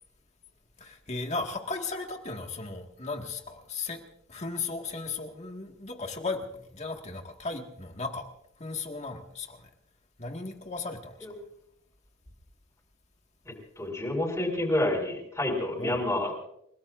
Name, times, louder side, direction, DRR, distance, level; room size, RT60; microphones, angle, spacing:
voice 1, 0.8-4.0 4.3-8.3 8.6-9.7 10.2-11.1 15.8-16.0, left 3 dB, 35° left, 3 dB, 1.8 m, -36 dB
voice 2, 13.5-16.3, left 1 dB, 15° left, -2 dB, 5.3 m, -29 dB
30.0 x 18.5 x 2.5 m, 0.76 s
head